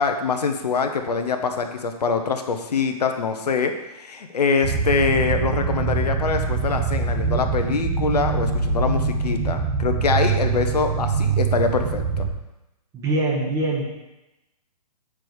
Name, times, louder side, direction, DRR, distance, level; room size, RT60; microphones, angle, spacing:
voice 1, 0.0-12.2, left 5 dB, 75° left, 6 dB, 0.9 m, -24 dB
sound 1, 4.6-12.3, right 5 dB, 35° right, 1.2 m, -23 dB
voice 2, 12.9-13.9, right 2 dB, 15° right, -3 dB, 1.2 m, -23 dB
7.7 x 4.9 x 4.7 m, 0.98 s
hypercardioid pair, 135°, 21 cm